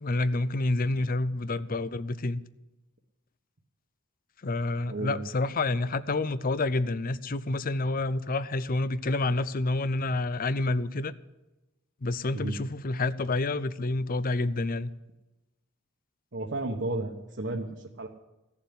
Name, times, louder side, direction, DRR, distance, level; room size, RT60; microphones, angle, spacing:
voice 1, 0.0-2.4 4.4-11.1 12.0-14.9, left 2 dB, 45° left, 0.6 m, -28 dB
voice 2, 4.9-5.3 12.3-12.6 16.3-17.7 18.0-18.1, right 2 dB, 60° right, 1.3 m, -32 dB
16.0 x 7.2 x 9.7 m
head